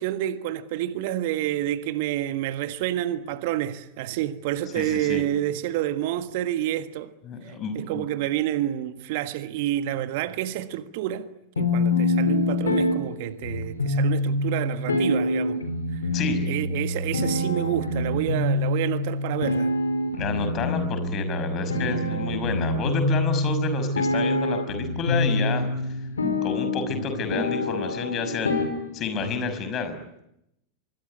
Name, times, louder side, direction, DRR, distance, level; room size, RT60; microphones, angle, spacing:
voice 1, 0.0-7.1 7.4-11.3 11.6-15.6 15.9-16.1 16.4-19.7, right 13 dB, 50° right, 1.6 m, -29 dB
voice 2, 4.7-5.2 7.2-8.1 16.1-16.4 20.1-25.7 26.4-28.6 28.9-30.0, left 4 dB, 30° left, 5.8 m, -30 dB
sound 1, 11.6-29.5, left 2 dB, 75° left, 4.6 m, -26 dB
25.5 x 24.0 x 9.7 m
figure-of-eight pair, 90°, 0 cm